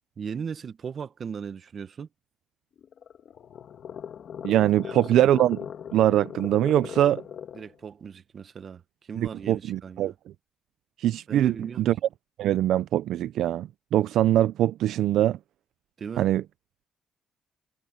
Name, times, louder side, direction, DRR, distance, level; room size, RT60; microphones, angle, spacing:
voice 1, 0.2-2.1 4.8-4.9 7.5-8.8 9.1-10.1 11.3-11.8 16.0-16.3, right 6 dB, 50° right, 1.3 m, -37 dB
sound 1, 2.8-7.7, left 8 dB, 60° left, 2.1 m, -39 dB
voice 2, 4.4-5.7 5.9-7.2 9.2-10.1 11.0-12.0 12.4-15.4 16.2-16.4, right 12 dB, 80° right, 0.5 m, -23 dB
cardioid pair, 90°, 0 cm